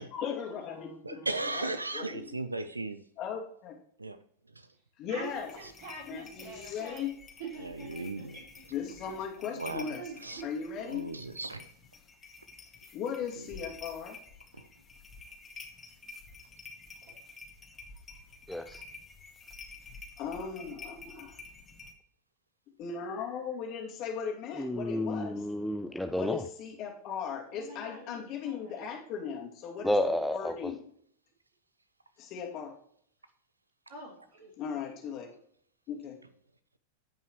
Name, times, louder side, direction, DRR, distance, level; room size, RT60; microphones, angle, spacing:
voice 1, 0.0-2.4 3.2-3.8 5.0-5.5 6.1-7.1 8.7-10.1 10.4-11.1 12.9-14.2 20.2-21.4 22.8-25.3 26.1-30.8 32.2-32.7 34.6-35.3 35.9-36.2, left 7 dB, 40° left, 2.5 m, -38 dB
voice 2, 1.0-3.0 4.0-4.2 7.6-8.4 9.6-9.8 10.2-10.4 10.9-11.6, right 2 dB, 80° right, 0.5 m, -36 dB
voice 3, 5.1-7.1 7.4-8.5 9.0-9.2 9.6-10.4 17.0-17.2 27.5-28.8 33.9-34.5, right 4 dB, 55° right, 4.4 m, -46 dB
sound 1, 5.2-21.9, left 4 dB, 20° left, 1.9 m, -50 dB
voice 4, 18.5-18.8 24.5-26.5 29.8-30.7, left 1 dB, ahead, 0.5 m, -31 dB
15.5 x 5.5 x 3.1 m
figure-of-eight pair, 90°, 0 cm